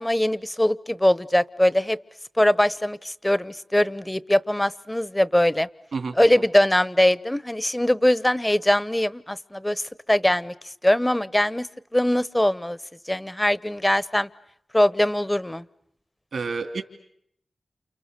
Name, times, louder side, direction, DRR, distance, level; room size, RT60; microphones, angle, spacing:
voice 1, 0.0-2.0 2.4-5.7 6.2-9.8 10.1-10.5 10.8-11.7 11.9-12.8 13.1-14.3 14.7-15.6, left 1 dB, 15° left, 18 dB, 1.0 m, -21 dB
voice 2, 5.9-6.4 16.3-16.8, right 4 dB, 80° right, 6 dB, 2.8 m, -30 dB
30.0 x 28.5 x 6.7 m, 0.73 s
cardioid pair, 50°, 0 cm